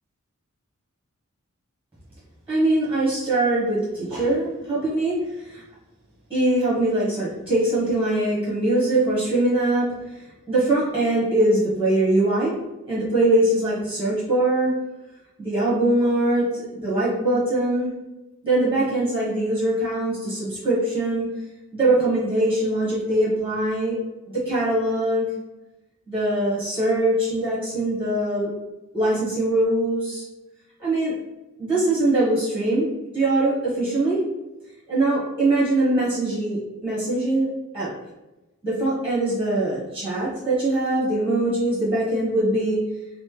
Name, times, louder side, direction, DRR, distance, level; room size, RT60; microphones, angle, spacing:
voice 1, 2.5-5.6 6.3-12.6 12.9-14.7 15.4-17.9 18.4-21.3 21.7-24.0 24.3-25.3 26.1-28.5 28.9-30.2 30.8-31.1 31.6-32.9 33.1-34.2 34.9-37.5 37.7-37.9 38.6-42.8, right 1 dB, 10° right, -8 dB, 1.3 m, -22 dB
4.1 x 2.1 x 3.2 m, 1.0 s
head